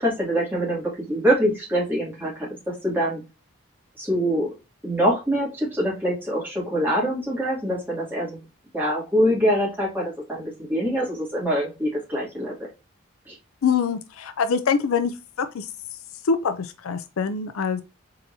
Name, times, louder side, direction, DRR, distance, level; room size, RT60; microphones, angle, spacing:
voice 1, 0.0-3.2 4.0-4.5 4.8-8.4 8.7-12.5 13.3-13.4, equal, 10° right, 2.2 m, -24 dB
voice 2, 13.6-15.7 16.2-17.8, left 6 dB, 85° left, 0.5 m, -24 dB
4.2 x 3.8 x 2.6 m
head